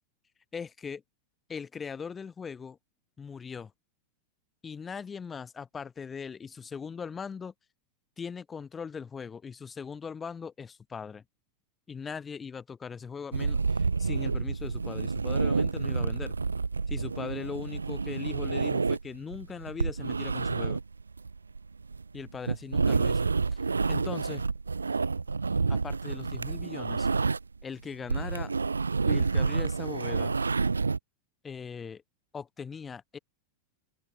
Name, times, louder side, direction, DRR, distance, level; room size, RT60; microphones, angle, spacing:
voice 1, 0.5-1.0 1.5-2.8 3.2-3.7 4.6-7.5 8.2-11.2 11.9-16.4 16.9-20.8 22.1-23.6 23.9-24.4 25.7-27.1 27.6-28.5 29.1-30.3 31.4-32.0 32.3-33.2, left 6 dB, 20° left, 0.8 m, -40 dB
sound 1, 13.3-27.6 27.9-31.0, right 4 dB, 75° right, 0.6 m, -29 dB
figure-of-eight pair, 90°, 0 cm